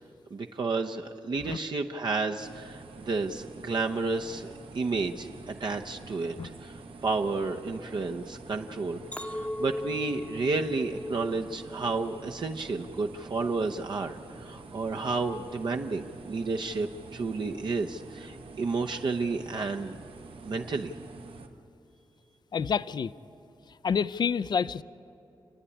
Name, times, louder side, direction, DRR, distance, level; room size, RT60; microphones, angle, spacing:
voice 1, 0.3-6.3 6.6-20.0 20.4-20.9, right 3 dB, 55° right, 3 dB, 0.8 m, -31 dB
sound 1, 2.4-21.5, right 3 dB, 75° right, 1.3 m, -47 dB
Chink clink, 9.1-13.5 13.9-14.4, left 1 dB, 15° left, 0.8 m, -39 dB
voice 2, 22.5-23.1 23.8-24.8, left 6 dB, 50° left, 16 dB, 0.4 m, -28 dB
29.5 x 9.9 x 9.9 m, 2.8 s
wide cardioid pair, 130°, 9 cm